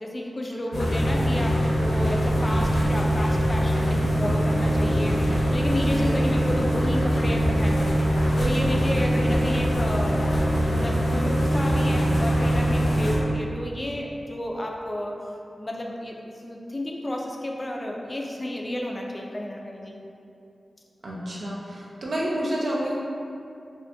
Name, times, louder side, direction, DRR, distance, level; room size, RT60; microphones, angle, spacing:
voice 1, 0.0-8.0 8.4-10.3 10.6-15.2 15.6-20.0, left 1 dB, 30° left, 0 dB, 0.3 m, -31 dB
sound 1, 0.7-13.2, equal, 80° left, 0.6 m, -23 dB
voice 2, 8.9-9.2 21.0-22.9, right 1 dB, 70° right, -5 dB, 0.6 m, -30 dB
2.6 x 2.5 x 3.3 m, 2.6 s
wide cardioid pair, 75°, 0 cm